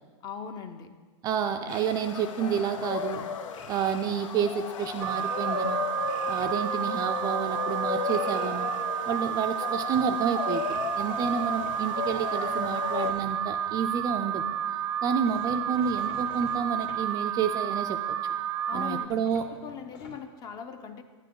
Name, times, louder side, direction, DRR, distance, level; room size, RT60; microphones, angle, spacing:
voice 1, 0.2-0.9 6.4-6.5 18.7-21.0, left 7 dB, 25° left, 9 dB, 0.6 m, -40 dB
voice 2, 1.2-3.2 3.7-5.9 6.3-8.7 9.1-14.4 15.0-18.0 18.7-19.5, right 7 dB, 25° right, 6 dB, 0.4 m, -29 dB
sound 1, 1.7-13.1, left 6 dB, 90° left, 0.8 m, -34 dB
sound 2, 2.7-4.2 4.7-5.5 6.0-6.5 9.6-9.7 9.9-10.1 10.6-14.1 15.2-17.0 19.2-20.2, left 4 dB, 55° left, 2.1 m, -50 dB
Alarm, 5.0-19.1, right 10 dB, 75° right, 0.6 m, -31 dB
10.0 x 9.1 x 3.8 m, 1.4 s
supercardioid pair, 145°, 16 cm